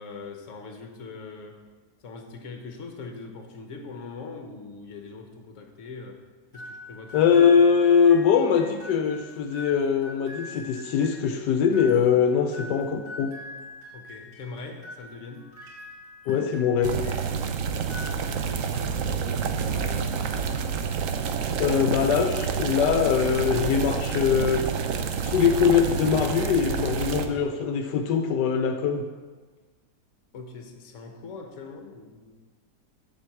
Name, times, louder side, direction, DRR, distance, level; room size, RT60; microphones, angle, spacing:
voice 1, 0.0-1.6 2.0-6.2 6.5-7.7 13.9-15.5 17.9-20.1 30.3-32.4, left 4 dB, 50° left, 4 dB, 1.2 m, -42 dB
sound 1, 6.5-17.4 17.8-18.6, left 2 dB, 30° right, 3.0 m, -44 dB
voice 2, 7.1-13.4 16.3-17.0 21.6-24.6 25.2-29.0, left 7 dB, 80° left, 6 dB, 1.2 m, -22 dB
sound 2, 16.8-27.3, right 6 dB, 65° right, 0.8 m, -28 dB
7.6 x 4.6 x 7.0 m, 1.3 s
omnidirectional pair, 1.8 m